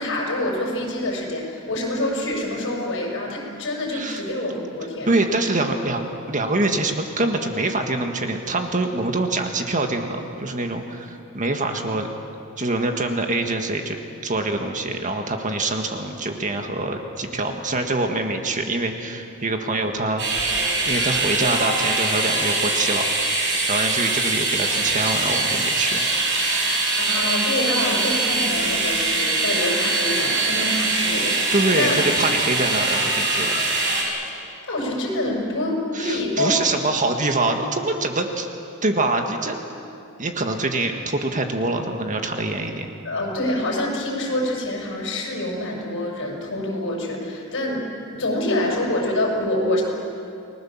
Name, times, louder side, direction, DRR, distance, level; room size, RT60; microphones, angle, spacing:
voice 1, 0.0-5.1 27.0-32.0 34.3-36.6 43.0-49.8, left 1 dB, 60° left, -1 dB, 6.1 m, -26 dB
voice 2, 3.9-4.2 5.1-12.1 12.6-14.0 14.2-20.2 20.8-23.1 23.7-26.0 31.5-33.6 35.9-38.5 38.8-39.6 40.2-42.9, right 2 dB, 35° right, 5 dB, 1.7 m, -24 dB
sound 1, 20.2-34.0, right 2 dB, 55° right, 5.9 m, -22 dB
30.0 x 20.0 x 7.3 m, 2.6 s
head